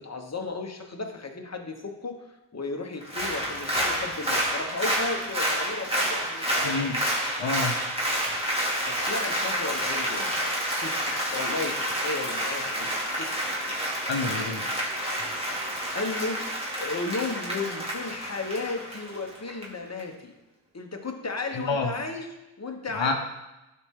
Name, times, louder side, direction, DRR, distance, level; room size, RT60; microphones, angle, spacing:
voice 1, 0.0-6.9 8.8-10.4 10.8-13.5 15.9-16.5 16.8-20.3 20.7-22.3 22.6-23.1, left 3 dB, 35° left, 3 dB, 1.1 m, -34 dB
Applause, 3.0-19.6 20.0-20.1, equal, 15° right, 2.4 m, -29 dB
voice 2, 6.6-7.0 7.4-7.8 14.1-14.7 21.5-21.9 22.9-23.1, left 3 dB, 75° left, 3 dB, 0.9 m, -28 dB
11.5 x 4.2 x 3.7 m, 0.99 s
cardioid pair, 40°, 45 cm